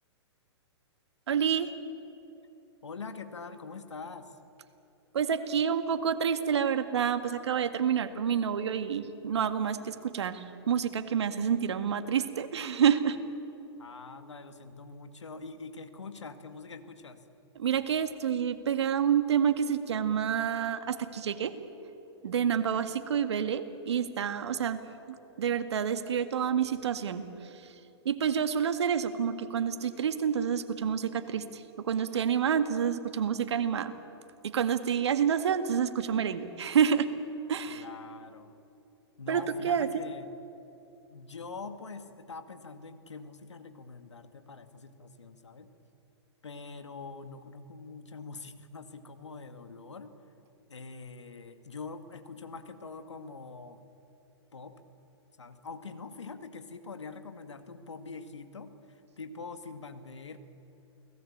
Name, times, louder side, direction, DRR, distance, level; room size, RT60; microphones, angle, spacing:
voice 1, 1.3-1.7 5.1-13.2 17.6-21.5 22.2-24.8 25.1-27.2 28.1-33.9 34.4-37.1 37.5-37.8 39.3-40.1, right 8 dB, 75° right, 9 dB, 2.0 m, -28 dB
voice 2, 2.8-4.4 13.8-17.2 37.7-38.5 39.2-40.3 41.1-45.7 46.4-50.1 50.7-53.8 54.5-54.8 55.4-60.4, left 4 dB, 90° left, 8 dB, 2.1 m, -44 dB
29.5 x 19.0 x 8.7 m, 3.0 s
hypercardioid pair, 120°, 14 cm